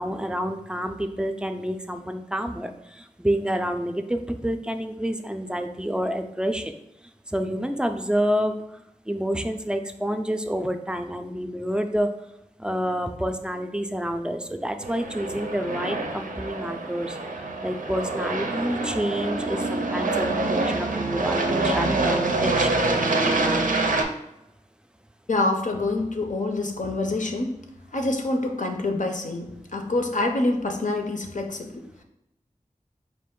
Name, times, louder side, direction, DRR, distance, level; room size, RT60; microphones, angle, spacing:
voice 1, 0.0-6.8 7.3-12.1 12.6-17.2 17.6-22.8, equal, 5° right, 6 dB, 0.4 m, -28 dB
Aircraft, 14.8-24.0, right 2 dB, 90° right, 0.5 m, -26 dB
voice 2, 25.3-27.5 27.9-31.8, left 2 dB, 70° left, 3 dB, 0.6 m, -26 dB
4.3 x 2.5 x 3.7 m, 0.85 s
wide cardioid pair, 50°, 13 cm